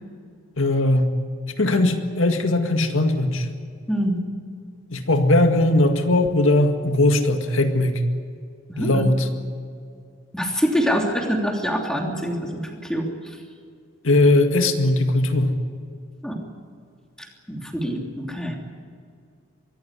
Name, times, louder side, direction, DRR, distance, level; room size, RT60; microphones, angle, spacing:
voice 1, 0.6-1.1 1.6-3.5 4.9-8.0 8.8-9.3 14.0-15.6, left 2 dB, 85° left, 5 dB, 2.0 m, -19 dB
voice 2, 3.9-4.2 8.7-9.0 10.3-12.5 12.8-13.1 16.2-16.4 17.5-18.6, equal, 5° left, 1 dB, 3.1 m, -24 dB
24.0 x 15.5 x 9.9 m, 2.3 s
head